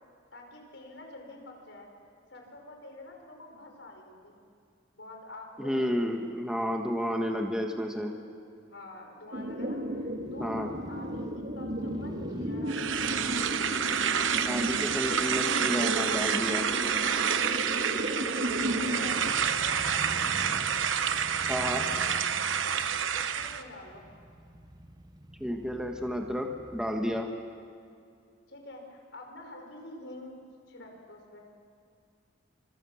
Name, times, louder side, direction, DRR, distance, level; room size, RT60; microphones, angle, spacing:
voice 1, 0.3-1.9 2.3-4.4 4.9-6.3 8.7-13.2 17.9-18.3 18.7-20.4 23.1-24.1 28.5-30.4 30.7-31.5, left 2 dB, 70° left, 2 dB, 5.2 m, -47 dB
voice 2, 5.6-8.1 10.4-10.7 14.4-16.7 21.5-21.8 25.4-27.3, equal, 5° right, 2 dB, 1.5 m, -31 dB
Crow / Motorcycle, 9.3-27.2, equal, 20° right, 1.2 m, -47 dB
sound 1, 9.3-19.3, equal, 50° right, 2.1 m, -34 dB
sound 2, 12.7-23.6, right 7 dB, 85° right, 1.0 m, -29 dB
26.0 x 25.5 x 7.3 m, 2.3 s
head